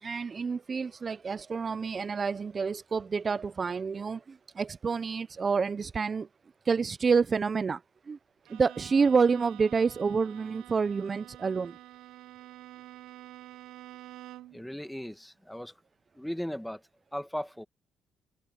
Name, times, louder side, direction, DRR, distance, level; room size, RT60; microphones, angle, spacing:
voice 1, 0.0-6.3 6.7-7.8 8.1-8.2 8.5-11.8, right 5 dB, 40° right, 0.5 m, -28 dB
Bowed string instrument, 8.4-14.7, right 14 dB, 90° right, 0.5 m, -48 dB
voice 2, 14.5-15.7 16.2-16.8 17.1-17.6, equal, 5° left, 1.7 m, -37 dB
cardioid pair, 90°, 0 cm